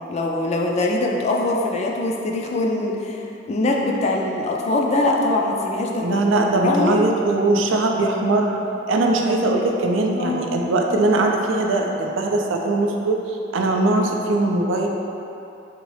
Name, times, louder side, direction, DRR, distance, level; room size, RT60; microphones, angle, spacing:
voice 1, 0.1-6.2 6.6-7.0 10.1-10.6, left 2 dB, 35° left, 0 dB, 0.3 m, -23 dB
voice 2, 6.0-8.6 8.9-14.9, right 2 dB, 80° right, 1 dB, 0.4 m, -20 dB
3.7 x 3.0 x 3.2 m, 2.8 s
head